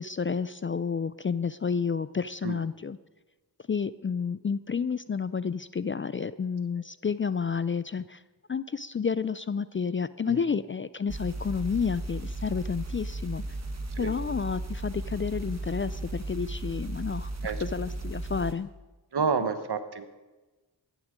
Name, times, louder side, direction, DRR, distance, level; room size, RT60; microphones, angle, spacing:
voice 1, 0.0-3.0 3.7-8.2 8.5-13.4 14.0-18.7, left 6 dB, 30° left, 16 dB, 0.4 m, -30 dB
sound 1, 11.1-18.5, right 2 dB, 40° right, 1.7 m, -35 dB
voice 2, 19.1-20.1, right 5 dB, 65° right, 10 dB, 1.2 m, -29 dB
15.0 x 11.0 x 5.1 m, 1.2 s
cardioid pair, 55°, 43 cm